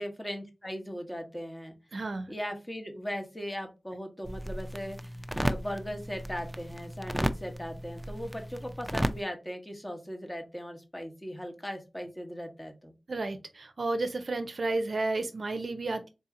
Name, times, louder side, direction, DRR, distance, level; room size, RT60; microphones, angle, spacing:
voice 1, 0.0-1.7 2.3-5.1 5.4-12.9, equal, 15° left, 4 dB, 1.2 m, -38 dB
voice 2, 1.9-2.3 13.1-16.1, right 2 dB, 65° right, 7 dB, 0.5 m, -32 dB
sound 1, 4.2-9.2, equal, 5° right, 0.4 m, -34 dB
3.9 x 2.7 x 3.6 m, 0.27 s
cardioid pair, 50°, 0 cm